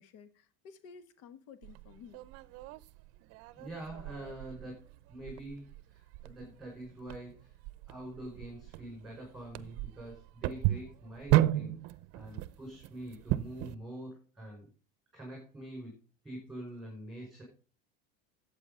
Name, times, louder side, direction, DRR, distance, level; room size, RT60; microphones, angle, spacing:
voice 1, 0.0-2.2, left 6 dB, 55° left, 1.4 m, -53 dB
sound 1, 1.6-13.7, right 15 dB, 55° right, 0.7 m, -35 dB
voice 2, 3.6-7.6 7.9-11.8 12.1-14.7 15.1-15.9 16.2-17.4, right 1 dB, ahead, 5.6 m, -45 dB
11.0 x 8.3 x 5.5 m
supercardioid pair, 130°, 30 cm